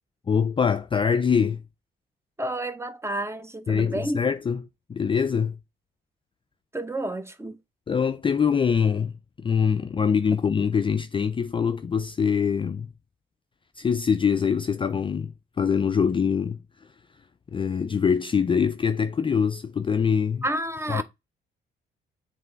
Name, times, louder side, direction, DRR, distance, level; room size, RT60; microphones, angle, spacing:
voice 1, 0.3-1.6 3.7-4.6 4.9-5.6 7.9-12.9 13.8-16.6 17.5-20.4 20.9-21.0, left 6 dB, 25° left, 0.4 m, -24 dB
voice 2, 2.4-4.2 6.7-7.6 20.4-21.0, right 1 dB, 15° right, 0.8 m, -30 dB
7.5 x 3.1 x 3.9 m
cardioid pair, 90°, 20 cm